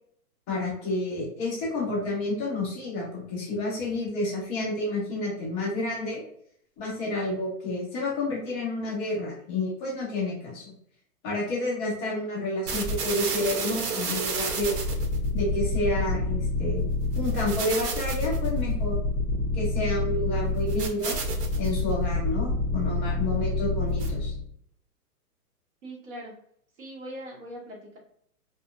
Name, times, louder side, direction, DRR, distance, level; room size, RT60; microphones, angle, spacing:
voice 1, 0.5-6.2 6.8-10.7 11.2-14.7 15.3-16.9 17.1-19.0 19.5-21.2 21.6-24.3, left 2 dB, ahead, -20 dB, 0.6 m, -30 dB
sound 1, 12.7-24.5, left 1 dB, 80° right, 0.8 m, -28 dB
voice 2, 25.8-26.3 26.8-28.0, right 1 dB, 50° right, -3 dB, 1.1 m, -40 dB
2.5 x 2.4 x 2.5 m, 0.68 s
hypercardioid pair, 175°, 46 cm